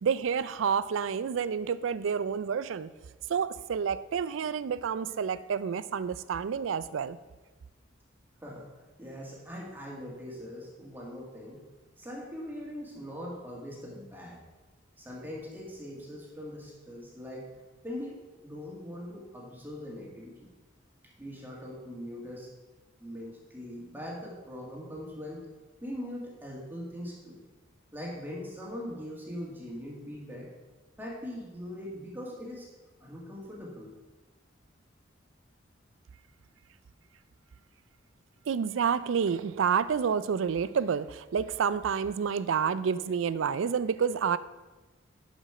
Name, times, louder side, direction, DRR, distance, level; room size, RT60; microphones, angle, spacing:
voice 1, 0.0-2.9 3.3-7.2 38.5-44.4, right 6 dB, 75° right, 15 dB, 0.4 m, -29 dB
voice 2, 9.0-11.6 12.0-14.4 15.0-17.5 17.8-20.5 21.2-22.5 23.0-25.4 25.8-27.4 27.9-30.5 31.0-32.7 33.0-33.9, equal, 10° right, -4 dB, 1.9 m, -41 dB
11.5 x 5.2 x 4.9 m, 1.2 s
head